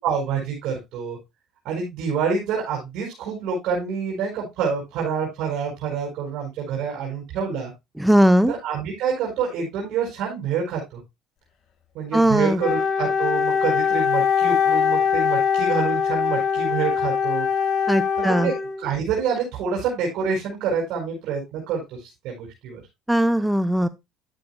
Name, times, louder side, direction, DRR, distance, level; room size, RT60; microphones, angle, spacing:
voice 1, 0.0-1.2 1.6-7.7 8.5-11.0 11.9-17.5 18.2-22.8, right 6 dB, 65° right, -2 dB, 5.4 m, -27 dB
voice 2, 8.0-8.5 12.1-12.6 17.9-18.5 23.1-23.9, equal, 5° right, 13 dB, 0.7 m, -18 dB
Wind instrument woodwind instrument, 12.6-19.0, left 6 dB, 55° left, 1.9 m, -22 dB
11.5 x 9.2 x 2.2 m, 0.21 s
supercardioid pair, 90°, 0 cm